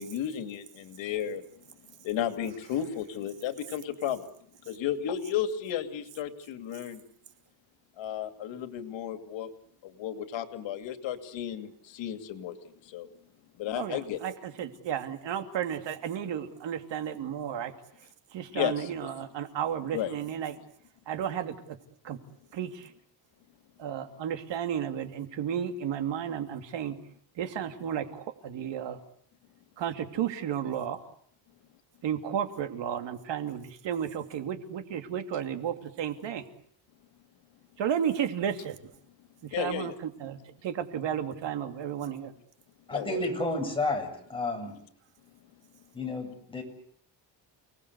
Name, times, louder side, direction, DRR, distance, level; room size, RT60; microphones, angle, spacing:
voice 1, 0.0-1.4 2.0-4.3 4.6-7.0 8.0-9.5 9.8-13.1 13.5-14.2 18.5-19.2 19.9-20.1 39.5-39.9 42.9-43.3, left 10 dB, 90° left, 8 dB, 2.8 m, -33 dB
voice 2, 13.7-14.3 14.6-17.7 18.3-20.5 21.1-21.5 22.0-22.2 22.5-22.9 23.8-27.0 27.4-29.0 29.8-31.0 32.0-36.5 37.8-38.8 39.6-42.3, right 9 dB, 75° right, 7 dB, 2.9 m, -33 dB
voice 3, 42.9-44.8 45.9-46.6, left 2 dB, 10° left, 2 dB, 7.6 m, -31 dB
30.0 x 19.5 x 8.2 m, 0.63 s
cardioid pair, 145°, 44 cm